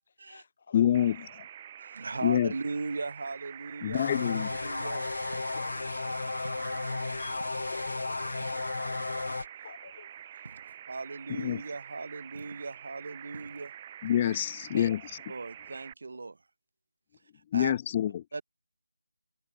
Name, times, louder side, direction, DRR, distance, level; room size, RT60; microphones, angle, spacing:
voice 1, 0.1-1.3 4.6-6.4 7.1-10.5, left 5 dB, 40° left, 3.2 m, -52 dB
voice 2, 0.7-1.2 2.2-2.5 3.8-4.5 7.2-7.4 11.4-11.6 14.0-15.0 17.5-18.2, left 10 dB, 20° left, 0.5 m, -26 dB
sound 1, 0.9-15.9, right 10 dB, 25° right, 2.6 m, -47 dB
voice 3, 1.8-4.1 4.5-5.0 6.5-6.7 10.9-13.7 14.7-14.9 15.3-16.4 17.5-17.7 18.3-18.4, right 3 dB, 55° right, 3.1 m, -38 dB
sound 2, 3.9-9.5, left 3 dB, 65° left, 1.0 m, -34 dB
sound 3, 4.4-4.8 5.3-5.9 6.4-6.8 7.4-7.8 8.4-8.9 10.4-10.8 11.4-11.8 12.3-12.8 13.3-13.8 14.2-14.6, right 2 dB, 70° right, 7.2 m, -50 dB
figure-of-eight pair, 165°, 0 cm